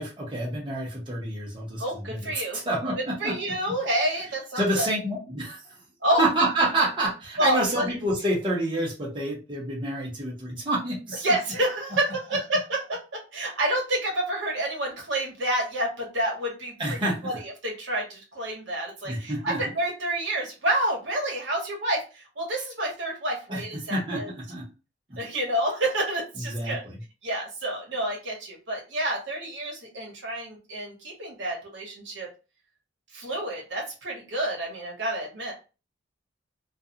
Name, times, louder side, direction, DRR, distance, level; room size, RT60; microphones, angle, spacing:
voice 1, 0.0-1.8 2.1-3.3 4.6-5.6 6.2-11.2 16.8-17.2 19.0-19.6 23.5-23.6 23.9-24.7 26.5-26.8, right 1 dB, 25° right, -5 dB, 0.8 m, -28 dB
voice 2, 1.8-2.6 3.2-4.9 6.0-6.2 7.4-7.9 11.2-24.4 25.2-26.8 27.2-32.3 33.1-35.5, right 1 dB, 65° right, -1 dB, 1.0 m, -29 dB
2.4 x 2.3 x 2.7 m, 0.31 s
head